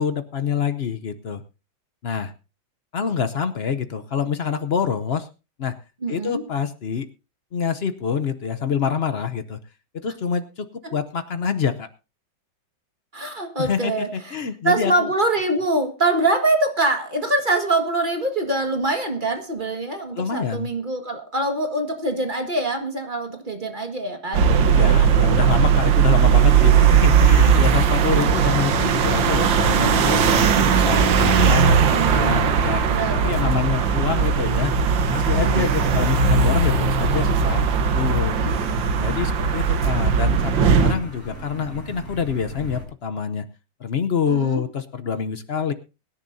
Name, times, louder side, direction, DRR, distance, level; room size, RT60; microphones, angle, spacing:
voice 1, 0.0-1.4 2.0-2.3 2.9-5.3 5.6-5.8 6.1-7.1 7.5-9.6 9.9-11.9 13.6-15.1 20.1-20.7 24.6-32.9 33.2-34.7 35.1-38.4 39.0-43.5 43.8-45.7, left 7 dB, 60° left, 9 dB, 0.6 m, -26 dB
voice 2, 6.0-6.4 10.8-11.0 13.1-14.3 14.6-24.5 27.4-27.5 32.9-33.6 35.6-36.0 38.4-38.9 44.3-44.6, right 2 dB, 25° right, 4 dB, 1.8 m, -24 dB
sound 1, 24.3-40.9, right 6 dB, 75° right, 1.8 m, -18 dB
sound 2, 26.3-42.9, equal, 5° left, 7.3 m, -40 dB
23.5 x 10.5 x 2.7 m, 0.30 s
omnidirectional pair, 2.1 m